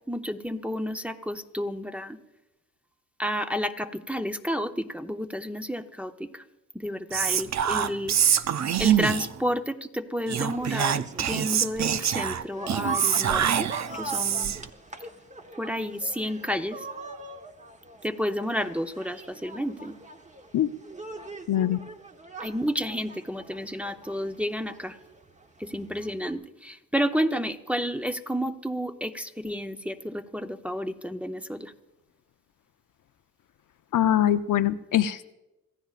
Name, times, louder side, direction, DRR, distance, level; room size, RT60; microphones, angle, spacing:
voice 1, 0.1-2.2 3.2-6.4 6.7-8.1 8.8-13.7 13.9-14.6 15.6-16.9 18.0-19.9 22.4-25.0 25.6-31.7, equal, 5° right, 5 dB, 0.8 m, -31 dB
Whispering, 7.1-9.4 10.3-14.7, right 9 dB, 55° right, 0.5 m, -25 dB
sound 1, 10.5-26.3, right 3 dB, 20° right, 1.1 m, -42 dB
voice 2, 21.5-21.8 33.9-35.3, left 11 dB, 65° left, 10 dB, 0.6 m, -23 dB
26.5 x 14.5 x 2.5 m, 1.0 s
cardioid pair, 80°, 34 cm